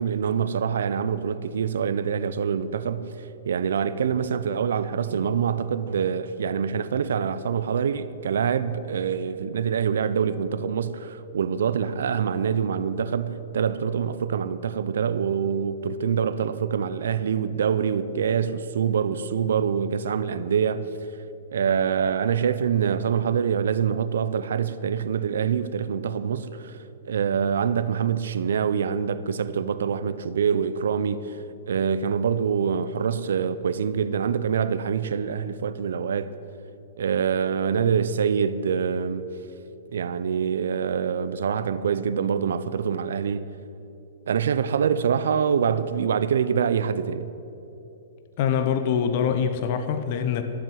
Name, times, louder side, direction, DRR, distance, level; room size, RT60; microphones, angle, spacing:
voice 1, 0.0-3.1 3.4-20.9 21.5-36.3 37.0-39.3 39.9-43.5 44.3-47.3, right 7 dB, 80° right, 0.7 m, -25 dB
voice 2, 48.4-50.4, left 7 dB, 50° left, 1.0 m, -24 dB
13.0 x 7.5 x 9.4 m
hypercardioid pair, 135°, 0 cm